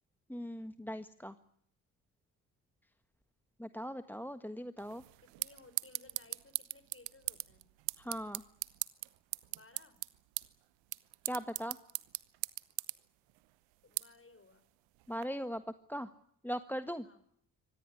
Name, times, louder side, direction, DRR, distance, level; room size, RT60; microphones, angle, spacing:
voice 1, 0.3-1.3 3.6-5.0 8.0-8.4 11.2-11.8 15.1-15.6 15.9-16.1 16.4-17.1, equal, 5° left, 11 dB, 1.5 m, -39 dB
sound 1, 4.8-15.3, right 22 dB, 75° right, 1.0 m, -42 dB
voice 2, 5.2-7.7 9.5-10.0 13.8-14.7 17.0-17.2, left 3 dB, 30° left, 13 dB, 5.7 m, -60 dB
24.5 x 18.5 x 9.9 m, 0.68 s
hypercardioid pair, 45°, 46 cm